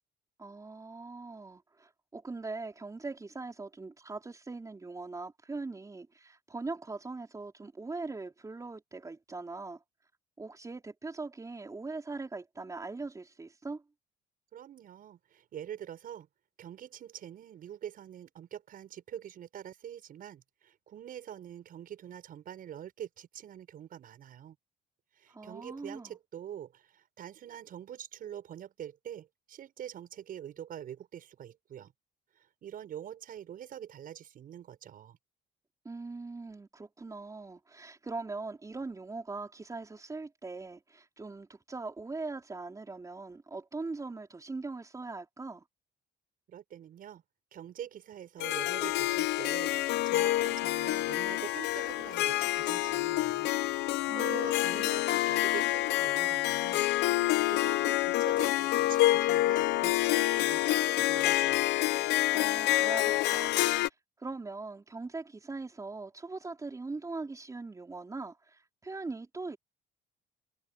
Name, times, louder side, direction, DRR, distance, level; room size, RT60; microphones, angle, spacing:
voice 1, 0.4-9.8 10.4-13.8 25.3-26.2 35.8-45.6 54.0-54.4 54.6-55.0 62.3-69.6, right 3 dB, 20° right, 4.4 m, -41 dB
voice 2, 14.5-16.3 16.6-24.6 25.2-31.9 32.6-35.2 46.5-47.2 47.5-53.5 53.8-56.9 57.1-61.6, right 10 dB, 55° right, 6.8 m, -45 dB
Harp, 48.4-63.9, left 16 dB, 85° left, 0.9 m, -27 dB
cardioid pair, 110°, 17 cm